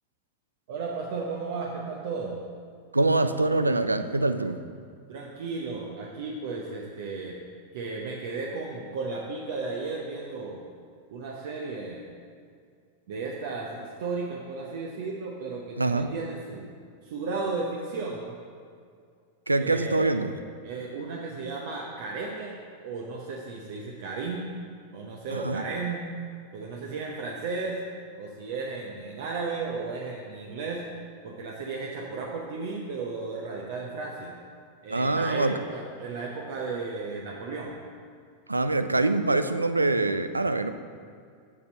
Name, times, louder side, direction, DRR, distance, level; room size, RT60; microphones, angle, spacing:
voice 1, 0.7-2.4 5.1-7.4 7.7-10.6 11.1-12.1 13.1-16.7 17.0-18.3 19.6-20.1 20.6-22.5 22.8-24.6 24.9-26.1 26.5-27.8 28.2-30.9 31.2-34.4 34.8-37.8, right 4 dB, 55° right, -1 dB, 0.8 m, -34 dB
voice 2, 2.9-4.6 15.8-16.1 19.5-20.3 25.3-25.6 34.9-35.6 38.5-40.7, right 2 dB, 80° right, 10 dB, 0.4 m, -24 dB
6.9 x 6.8 x 5.3 m, 2.2 s
figure-of-eight pair, 90°, 0 cm